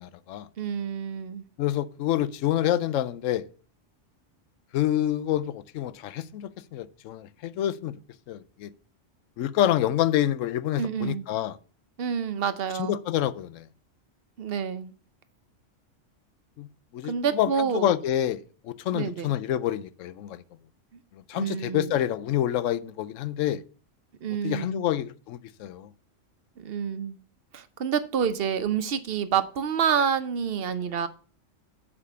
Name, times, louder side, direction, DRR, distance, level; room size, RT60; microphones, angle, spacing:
voice 1, 0.0-0.5 1.6-3.5 4.7-8.0 8.3-8.7 9.4-11.6 12.8-13.7 16.6-16.7 16.9-20.4 21.3-23.6 24.4-25.9, left 12 dB, 85° left, 0.9 m, -27 dB
voice 2, 0.6-1.4 10.8-11.3 12.0-12.9 14.4-14.9 17.0-17.9 18.9-19.3 21.4-21.9 24.2-24.9 26.6-27.2 27.5-31.1, right 7 dB, 55° right, 0.9 m, -28 dB
7.1 x 4.9 x 6.7 m
omnidirectional pair, 1.3 m